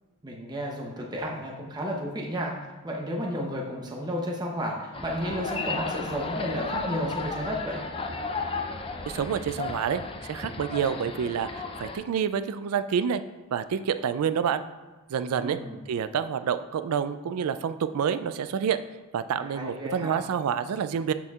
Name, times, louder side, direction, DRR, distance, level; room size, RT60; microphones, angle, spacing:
voice 1, 0.2-2.5 2.8-7.8 15.2-15.8 19.4-20.2, equal, 20° right, -1 dB, 0.7 m, -32 dB
sound 1, 4.9-12.0, left 3 dB, 25° left, 0.5 m, -34 dB
voice 2, 9.1-10.0 10.3-13.2 13.5-14.6 15.1-15.6 15.9-18.8 19.1-21.1, right 7 dB, 70° right, 12 dB, 0.3 m, -28 dB
13.0 x 4.3 x 2.4 m, 1.2 s
head